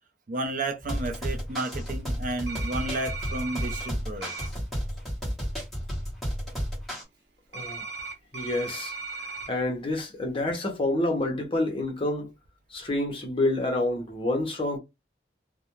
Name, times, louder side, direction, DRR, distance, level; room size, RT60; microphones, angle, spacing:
voice 1, 0.3-4.3, right 2 dB, 50° right, 0.5 m, -32 dB
sound 1, 0.8-7.0, equal, ahead, 1.0 m, -32 dB
sound 2, 2.5-3.9 4.2-4.5 7.5-9.5, right 4 dB, 90° right, 0.9 m, -37 dB
voice 2, 7.5-7.9 8.3-8.9 9.2-12.3 12.7-14.8, left 2 dB, 30° left, 0.8 m, -28 dB
2.4 x 2.1 x 3.0 m
head